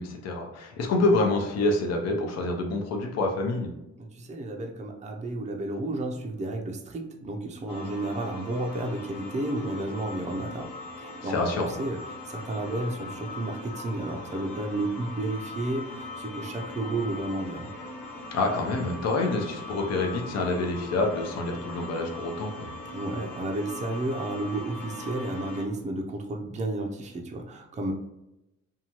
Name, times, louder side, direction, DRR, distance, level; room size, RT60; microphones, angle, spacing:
voice 1, 0.0-3.7 11.2-11.7 18.3-22.7, left 2 dB, 60° left, 2 dB, 0.7 m, -27 dB
voice 2, 4.0-10.7 11.0-11.4 11.8-12.0 12.3-17.7 22.9-27.9, right 2 dB, 25° right, 2 dB, 0.5 m, -32 dB
sound 1, 7.7-25.7, left 2 dB, 90° left, 0.9 m, -40 dB
2.8 x 2.3 x 2.9 m, 0.89 s
cardioid pair, 90°, 30 cm